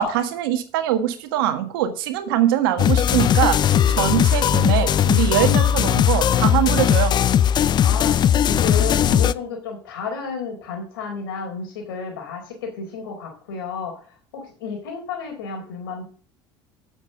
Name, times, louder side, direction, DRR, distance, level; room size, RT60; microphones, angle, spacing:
voice 1, 0.0-7.1, right 11 dB, 80° right, 8 dB, 1.6 m, -22 dB
sound 1, 2.8-9.3, left 9 dB, 40° left, 0.4 m, -18 dB
voice 2, 7.8-14.0 14.3-16.0, left 5 dB, 85° left, 3 dB, 4.2 m, -32 dB
9.1 x 7.3 x 6.5 m, 0.42 s
hypercardioid pair, 80°, 12 cm